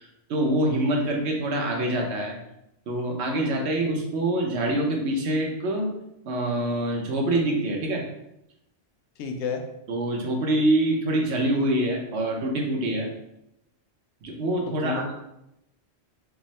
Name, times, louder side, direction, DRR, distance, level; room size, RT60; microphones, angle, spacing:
voice 1, 0.0-2.4 2.9-5.9 6.2-8.0 9.9-13.1 14.2-15.2, right 1 dB, 80° right, 1 dB, 1.0 m, -25 dB
voice 2, 9.2-9.6 14.7-15.2, left 5 dB, 90° left, 4 dB, 0.9 m, -31 dB
3.5 x 2.0 x 4.0 m, 0.84 s
omnidirectional pair, 1.1 m